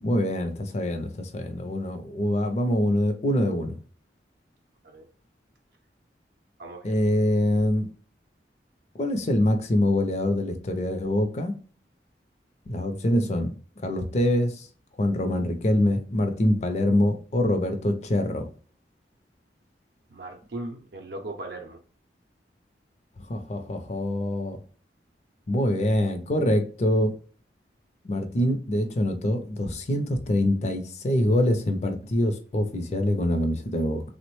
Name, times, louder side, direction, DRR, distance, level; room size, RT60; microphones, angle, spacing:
voice 1, 0.0-3.8 6.8-7.9 9.0-11.5 12.7-13.5 13.8-14.7 15.0-18.4 23.3-24.6 25.5-27.1 28.0-34.0, left 1 dB, 40° left, 0.5 m, -24 dB
voice 2, 6.6-7.0 20.1-21.8, right 2 dB, 65° right, 0.5 m, -38 dB
3.4 x 2.1 x 3.0 m
head